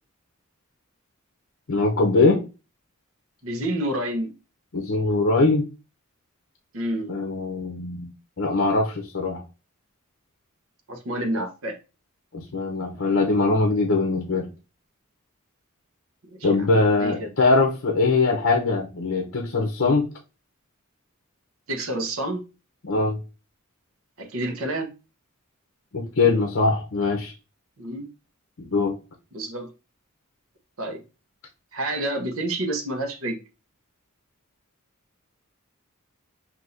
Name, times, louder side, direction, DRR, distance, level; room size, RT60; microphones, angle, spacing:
voice 1, 1.7-2.4 4.7-5.6 7.1-8.1 8.4-9.4 12.3-14.5 16.4-20.1 22.8-23.2 25.9-27.3 28.6-28.9, left 3 dB, 60° left, 0.7 m, -22 dB
voice 2, 3.4-4.3 6.7-7.1 10.9-11.8 16.3-16.5 17.0-17.3 21.7-22.4 24.2-24.9 27.8-28.1 29.3-29.7 30.8-31.0 31.7-33.4, right 1 dB, 75° right, 1.0 m, -28 dB
5.9 x 2.7 x 2.6 m
head